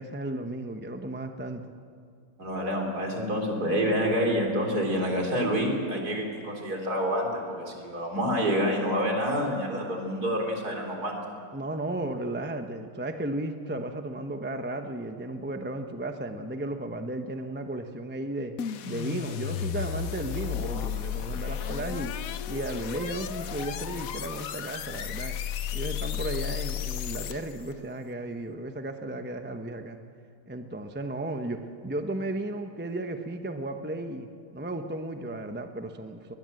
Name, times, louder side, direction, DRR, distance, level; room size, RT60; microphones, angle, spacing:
voice 1, 0.0-1.6 11.5-18.5 18.9-22.1 22.5-25.4 25.7-30.0 30.5-34.3 34.5-36.3, right 2 dB, 10° right, 6 dB, 0.5 m, -34 dB
voice 2, 2.4-11.2, equal, 50° right, 1 dB, 4.3 m, -28 dB
sound 1, 18.6-27.7, left 9 dB, 65° left, 0.9 m, -33 dB
21.5 x 21.0 x 7.8 m, 2.3 s
omnidirectional pair, 2.2 m